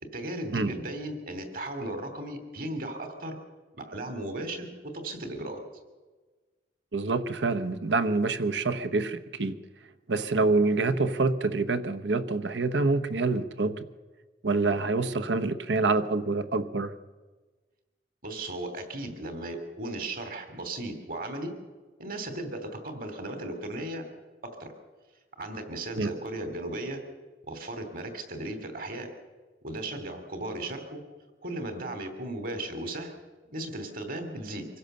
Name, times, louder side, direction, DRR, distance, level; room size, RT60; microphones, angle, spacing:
voice 1, 0.1-3.4 3.7-5.6 18.2-21.5 22.0-24.0 24.4-24.7 25.4-27.0 27.5-29.1 29.6-31.0 31.4-33.1 33.5-34.7, right 1 dB, 50° right, 2.9 m, -36 dB
voice 2, 6.9-9.6 10.1-13.8 14.4-16.9 26.0-26.1, right 3 dB, 85° right, 1.1 m, -26 dB
25.0 x 15.5 x 6.7 m
head